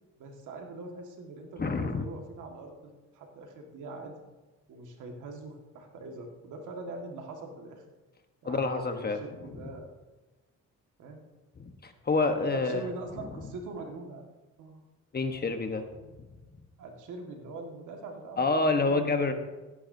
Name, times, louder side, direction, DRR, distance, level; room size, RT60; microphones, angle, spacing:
voice 1, 0.2-4.2 4.7-7.8 8.4-9.9 11.0-11.2 12.5-14.3 14.6-14.8 16.8-19.3, right 3 dB, 80° right, 2 dB, 1.9 m, -43 dB
voice 2, 1.6-2.1 8.4-9.2 11.6-12.9 13.2-13.3 15.1-15.8 18.4-19.3, left 3 dB, 30° left, 6 dB, 1.2 m, -28 dB
16.0 x 9.9 x 2.8 m, 1.2 s
cardioid pair, 90°, 30 cm